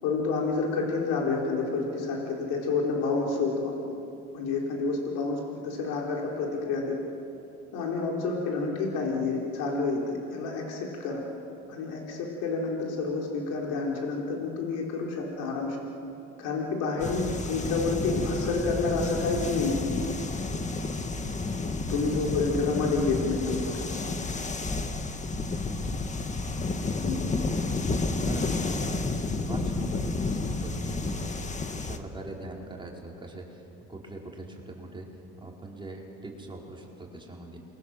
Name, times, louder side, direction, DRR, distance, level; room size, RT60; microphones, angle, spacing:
voice 1, 0.0-4.0 4.3-7.0 7.7-11.2 11.7-15.8 16.4-19.8 21.9-23.8 27.0-27.2, left 4 dB, 85° left, -1 dB, 4.5 m, -29 dB
sound 1, 17.0-32.0, left 3 dB, 25° left, 1.8 m, -31 dB
voice 2, 22.1-22.4 25.6-26.3 27.6-27.8 28.2-29.1 29.5-31.2 31.7-33.6 33.9-35.1 35.4-37.6, right 2 dB, 15° right, -1 dB, 4.7 m, -42 dB
29.5 x 23.0 x 7.6 m, 2.8 s
supercardioid pair, 100°, 30 cm